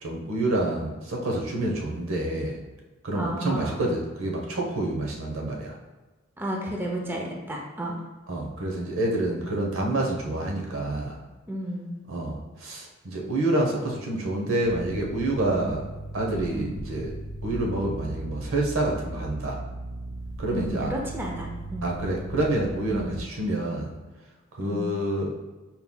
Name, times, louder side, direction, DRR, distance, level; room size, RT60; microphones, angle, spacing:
voice 1, 0.0-2.6 3.0-5.8 8.3-11.2 12.1-15.8 16.1-19.6 20.4-20.9 21.8-23.9 24.5-25.4, right 1 dB, 85° right, -1 dB, 0.8 m, -28 dB
voice 2, 3.1-3.8 6.4-8.0 11.5-12.0 15.6-15.7 16.5-16.8 20.5-21.9 22.9-23.1 24.6-25.0, right 1 dB, 10° right, -1 dB, 0.5 m, -32 dB
sound 1, 14.6-23.2, right 1 dB, 70° left, 0.5 m, -37 dB
4.3 x 3.6 x 2.2 m, 1.2 s
head